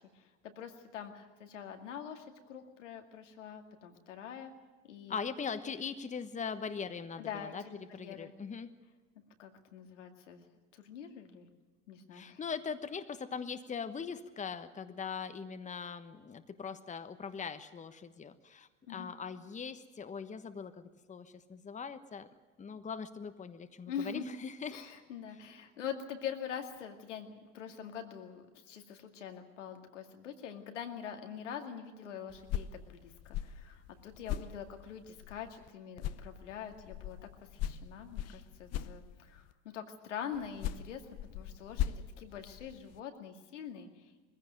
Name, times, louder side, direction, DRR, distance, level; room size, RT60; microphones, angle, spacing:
voice 1, 0.2-4.5 4.8-5.2 7.2-8.3 9.4-10.5 10.7-11.5 11.9-12.4 18.9-19.1 23.9-24.2 24.7-37.2 37.6-41.0 41.3-44.1, left 8 dB, 85° left, 5 dB, 2.3 m, -44 dB
voice 2, 5.1-7.6 7.9-8.7 12.1-22.3 22.6-24.8, left 6 dB, 20° left, 10 dB, 1.2 m, -41 dB
sound 1, 32.3-35.7 36.0-39.5 40.3-43.0, left 11 dB, 45° left, 0.9 m, -40 dB
21.5 x 15.5 x 9.3 m, 1.3 s
hypercardioid pair, 85°, 36 cm